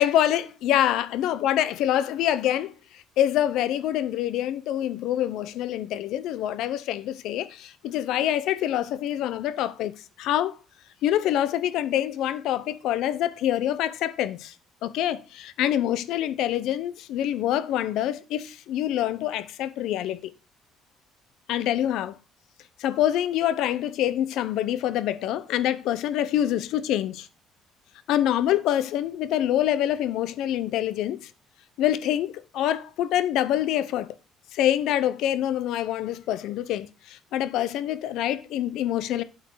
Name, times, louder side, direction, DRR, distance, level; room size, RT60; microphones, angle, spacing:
voice 1, 0.0-9.9 10.2-10.5 11.0-14.5 14.8-20.3 21.5-22.2 22.8-27.3 28.1-31.3 31.8-34.1 34.5-39.2, left 12 dB, 80° left, 0.8 m, -26 dB
8.5 x 8.1 x 4.7 m
cardioid pair, 130°, 0 cm